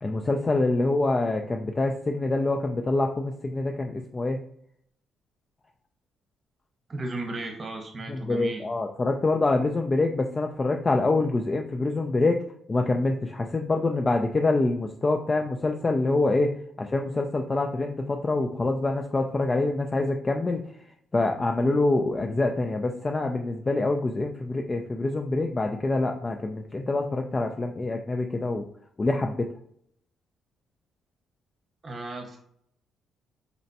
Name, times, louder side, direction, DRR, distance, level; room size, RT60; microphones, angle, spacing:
voice 1, 0.0-4.4 8.1-12.4 12.7-16.5 16.8-20.8 21.1-28.7 29.0-29.5, left 2 dB, 25° left, 3 dB, 0.3 m, -25 dB
voice 2, 6.9-8.6 31.8-32.4, right 2 dB, 35° right, 2 dB, 1.0 m, -35 dB
4.0 x 2.1 x 2.8 m, 0.67 s
cardioid pair, 90°, 0 cm